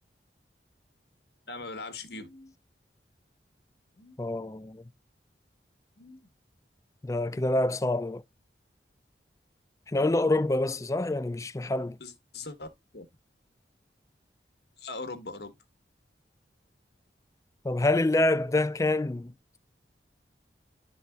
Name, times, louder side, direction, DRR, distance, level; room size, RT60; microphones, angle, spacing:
voice 1, 1.5-2.5 4.0-4.2 6.0-6.3 12.0-12.7 12.9-13.1 14.8-15.5, left 3 dB, 65° left, 1.5 m, -40 dB
voice 2, 4.2-4.8 7.0-8.2 9.9-12.0 17.6-19.3, left 2 dB, 15° left, 0.4 m, -26 dB
12.0 x 4.0 x 2.2 m
head